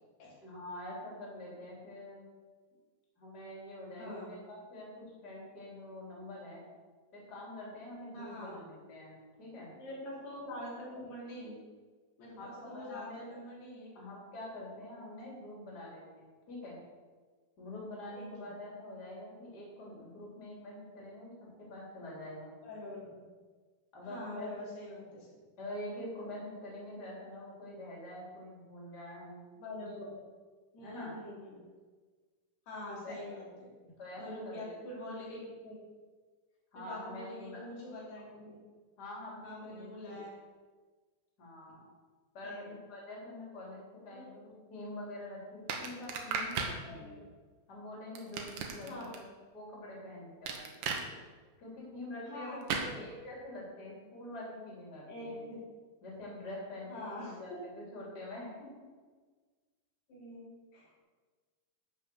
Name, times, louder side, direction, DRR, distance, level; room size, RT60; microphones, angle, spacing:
voice 1, 0.4-2.2 3.2-6.6 7.1-9.7 12.4-13.4 13.9-16.8 17.6-22.5 23.9-24.5 25.6-29.4 29.8-29.9 30.8-31.1 33.0-33.2 33.8-34.7 36.7-37.7 39.0-40.2 41.4-41.8 42.3-47.2 47.7-49.3 49.5-50.7 51.6-55.4 56.0-58.9, left 1 dB, 25° left, -5 dB, 3.8 m, -45 dB
voice 2, 4.0-4.3 8.1-8.5 9.8-11.6 12.2-13.9 18.1-18.5 22.6-23.3 24.0-25.3 29.6-30.1 30.7-31.6 32.7-33.7 34.2-35.8 36.8-38.6 39.4-40.3 42.4-42.7 44.1-44.2 46.8-47.2 48.8-49.1 52.3-53.0 55.1-55.6 56.9-57.6 60.1-61.0, left 1 dB, 75° left, -6 dB, 5.2 m, -45 dB
sound 1, 45.7-46.8 48.2-49.2 50.5-51.0 52.7-52.9, right 5 dB, 65° right, 2.1 m, -35 dB
11.5 x 6.0 x 7.1 m, 1.4 s
omnidirectional pair, 4.7 m